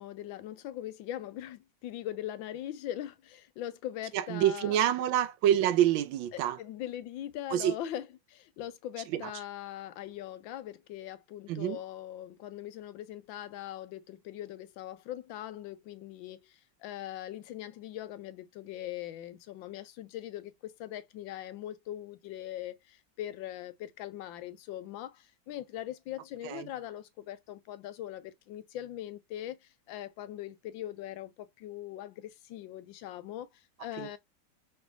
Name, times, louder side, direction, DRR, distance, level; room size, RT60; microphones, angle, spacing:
voice 1, 0.0-4.8 6.6-34.2, left 12 dB, 85° left, 1.4 m, -41 dB
voice 2, 4.1-6.6 7.5-7.7 9.1-9.3 11.5-11.8 26.4-26.7 33.9-34.2, right 11 dB, 85° right, 1.4 m, -27 dB
5.1 x 3.3 x 2.2 m
omnidirectional pair, 2.1 m